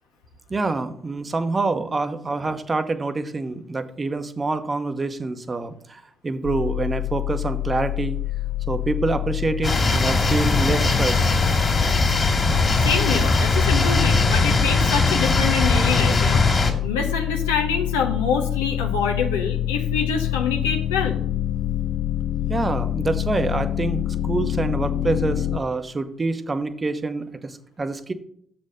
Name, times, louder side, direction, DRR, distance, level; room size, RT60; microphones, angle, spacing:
voice 1, 0.5-8.2 8.7-11.3 22.5-28.1, right 3 dB, 30° right, 10 dB, 0.9 m, -26 dB
sound 1, 6.4-25.6, left 13 dB, 60° left, 0.5 m, -27 dB
sound 2, 9.6-16.7, left 3 dB, 35° left, 2.2 m, -20 dB
voice 2, 12.8-21.2, left 6 dB, 85° left, 2 dB, 0.8 m, -26 dB
7.1 x 4.4 x 6.4 m, 0.65 s
hypercardioid pair, 50°, 0 cm